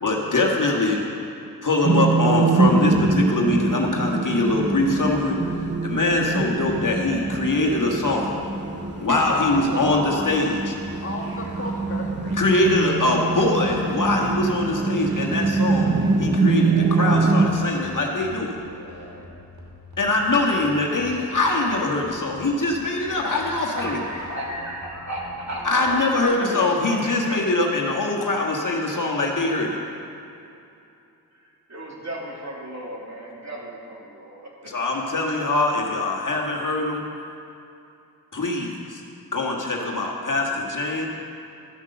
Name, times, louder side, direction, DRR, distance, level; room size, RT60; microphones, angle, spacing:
voice 1, 0.0-1.0 1.6-5.4 5.8-8.4 9.0-10.5 12.3-18.5 20.0-24.0 25.6-29.8 34.6-37.0 38.3-39.0 39.3-41.1, left 2 dB, 50° left, -1 dB, 1.6 m, -23 dB
sound 1, 1.8-17.5, right 3 dB, 30° right, 0.7 m, -24 dB
sound 2, 6.6-26.2, equal, 65° right, 2.5 m, -43 dB
voice 2, 8.8-10.3 11.0-12.1, left 1 dB, 35° left, -2 dB, 2.0 m, -33 dB
voice 3, 23.4-26.2 26.5-27.4 28.1-29.1 29.9-30.1 31.3-34.7, right 1 dB, 45° right, -3 dB, 2.5 m, -36 dB
12.5 x 6.0 x 6.8 m, 2.7 s
cardioid pair, 50°, 39 cm